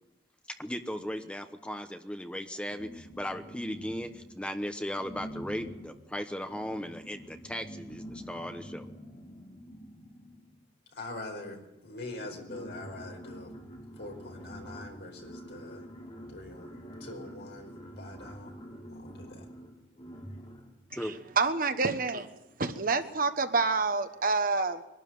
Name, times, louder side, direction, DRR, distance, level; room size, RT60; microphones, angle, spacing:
voice 1, 0.6-8.9 20.9-21.1, equal, 5° left, 7 dB, 0.9 m, -37 dB
sound 1, 2.7-4.5 4.9-10.6 11.5-11.6 11.9-20.8, equal, 30° left, 3.0 m, -46 dB
voice 2, 11.0-13.5 14.0-15.8 16.3-18.5 18.9-19.4, left 2 dB, 65° left, 2 dB, 4.8 m, -43 dB
voice 3, 21.4-22.3 22.6-24.8, right 4 dB, 50° right, 9 dB, 1.2 m, -27 dB
22.5 x 12.5 x 9.4 m, 0.95 s
head